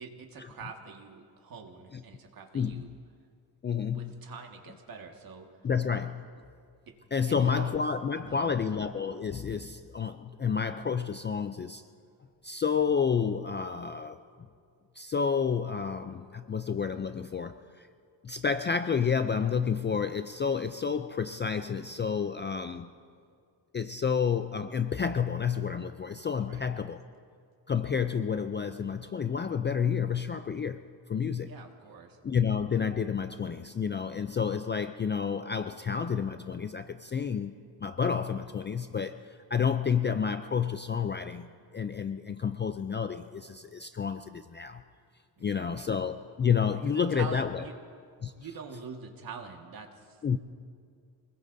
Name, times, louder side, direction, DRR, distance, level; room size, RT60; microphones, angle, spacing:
voice 1, 0.0-2.9 3.9-5.5 6.9-7.0 7.3-7.7 8.2-8.8 26.5-26.6 31.4-32.2 45.4-45.9 46.8-47.7 48.4-50.2, right 5 dB, 50° right, 3 dB, 1.8 m, -45 dB
voice 2, 2.5-2.9 3.6-4.1 5.6-6.2 7.1-11.8 12.4-14.2 15.0-17.9 18.2-22.9 23.7-27.0 27.7-30.8 31.1-31.5 32.2-44.8 45.4-47.6 48.2-48.3 50.2-50.4, left 6 dB, 25° left, 9 dB, 0.3 m, -30 dB
26.5 x 20.5 x 2.7 m, 2.2 s
cardioid pair, 130°, 45 cm